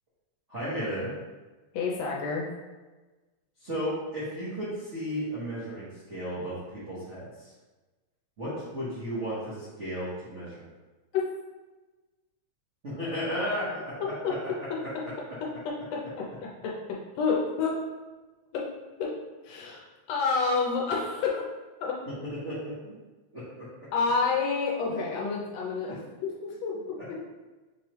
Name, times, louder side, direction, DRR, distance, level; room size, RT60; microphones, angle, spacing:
voice 1, 0.5-1.1 3.6-7.5 8.4-10.6 12.8-14.3 22.3-22.9 23.3-23.7, equal, 70° right, -11 dB, 0.7 m, -34 dB
voice 2, 1.7-2.5 11.1-11.2 16.6-16.7 17.2-17.7 18.5-18.6 19.0-19.1 19.4-21.4 21.8-22.0 23.9-26.0 26.4-27.2, left 4 dB, 75° left, -2 dB, 1.6 m, -28 dB
5.4 x 3.1 x 3.0 m, 1.2 s
omnidirectional pair, 3.3 m